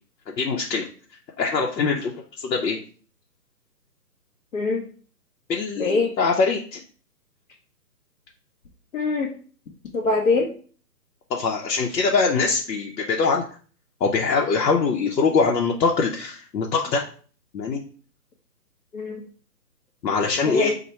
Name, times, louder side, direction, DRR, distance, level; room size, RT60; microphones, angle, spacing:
voice 1, 0.4-0.9 1.4-2.1 2.4-2.8 5.5-6.8 11.3-13.4 14.0-17.0 17.5-17.8 20.0-20.7, left 4 dB, 90° left, 0 dB, 0.7 m, -23 dB
voice 2, 4.5-4.8 5.8-6.1 8.9-9.3 9.9-10.5 18.9-19.2 20.5-20.7, left 3 dB, 55° left, -1 dB, 0.7 m, -23 dB
3.0 x 2.2 x 4.2 m, 0.43 s
hypercardioid pair, 170°, 49 cm